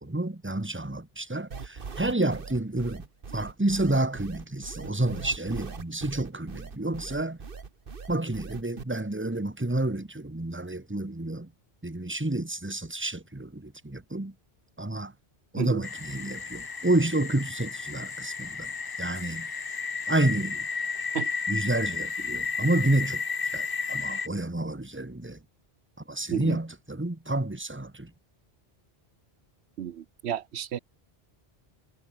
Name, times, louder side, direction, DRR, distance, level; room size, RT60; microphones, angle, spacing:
voice 1, 0.0-3.0 3.3-7.4 8.1-11.5 11.8-14.3 14.8-15.1 15.5-18.7 19.0-19.5 20.1-20.6 21.5-23.2 23.5-25.4 26.1-28.1, right 2 dB, 10° right, 1.4 m, -29 dB
sound 1, 1.5-8.8, right 5 dB, 60° right, 1.6 m, -40 dB
sound 2, 15.8-24.3, left 5 dB, 30° left, 0.5 m, -33 dB
voice 2, 29.8-30.8, right 10 dB, 85° right, 1.0 m, -31 dB
omnidirectional pair, 1.1 m